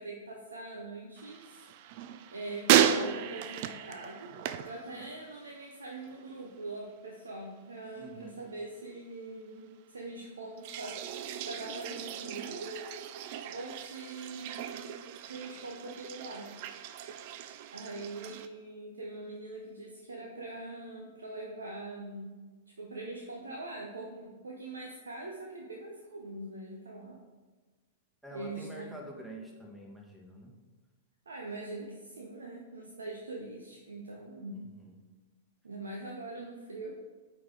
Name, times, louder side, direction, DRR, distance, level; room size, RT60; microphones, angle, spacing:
voice 1, 0.0-1.6 2.3-4.3 4.6-11.0 11.3-12.8 13.5-14.9 15.2-16.5 17.7-22.3 22.8-27.2 28.3-29.0 31.3-34.6 35.6-37.0, right 2 dB, 80° right, -1 dB, 0.8 m, -42 dB
sound 1, 1.2-5.6 5.9-6.4 10.6-18.5, right 10 dB, 50° right, 0.4 m, -34 dB
voice 2, 7.9-8.4 28.2-30.5 34.5-35.0, right 1 dB, 5° right, -1 dB, 1.4 m, -46 dB
8.6 x 4.0 x 3.7 m, 1.3 s
figure-of-eight pair, 105°, 0 cm